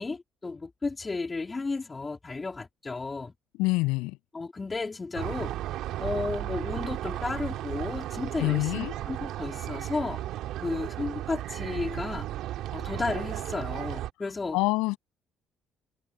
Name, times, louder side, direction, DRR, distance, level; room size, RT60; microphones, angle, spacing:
voice 1, 0.0-3.3 4.3-5.5 6.0-10.2 10.6-12.3 12.7-14.6, left 3 dB, 25° left, 3.5 m, -33 dB
voice 2, 3.6-4.2 8.4-9.0 14.5-15.0, left 23 dB, 85° left, 7.8 m, -26 dB
sound 1, 5.1-14.1, right 13 dB, 75° right, 2.0 m, -34 dB
supercardioid pair, 65°, 0 cm